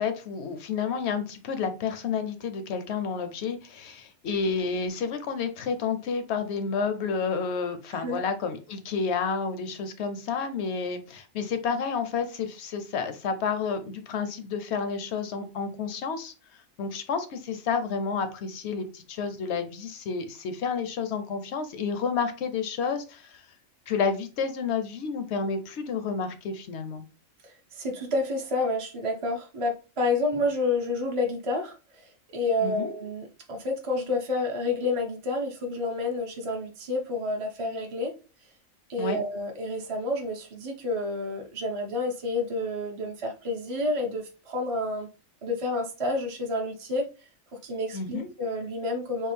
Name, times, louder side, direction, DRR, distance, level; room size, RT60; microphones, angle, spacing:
voice 1, 0.0-16.3 16.8-23.4 23.9-27.0 32.6-32.9 39.0-39.2 47.9-48.3, left 5 dB, 65° left, 9 dB, 0.8 m, -30 dB
voice 2, 27.4-38.1 38.9-45.1 45.4-47.1 47.6-49.3, left 2 dB, 35° right, 0 dB, 0.5 m, -29 dB
3.7 x 2.3 x 3.2 m, 0.32 s
omnidirectional pair, 1.4 m